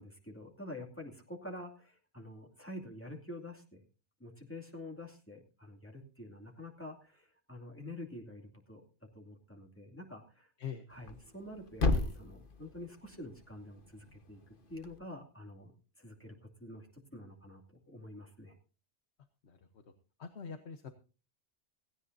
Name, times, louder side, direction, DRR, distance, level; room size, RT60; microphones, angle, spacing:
voice 1, 0.0-3.8 4.2-8.8 9.1-10.5 10.9-14.4 14.7-15.7 16.0-18.5, left 1 dB, 10° left, 0 dB, 2.5 m, -48 dB
Thump thud, 10.9-15.0, left 3 dB, 50° left, 1.6 m, -37 dB
voice 2, 20.2-20.9, left 7 dB, 75° left, 8 dB, 1.3 m, -43 dB
17.0 x 16.5 x 2.7 m, 0.35 s
omnidirectional pair, 1.1 m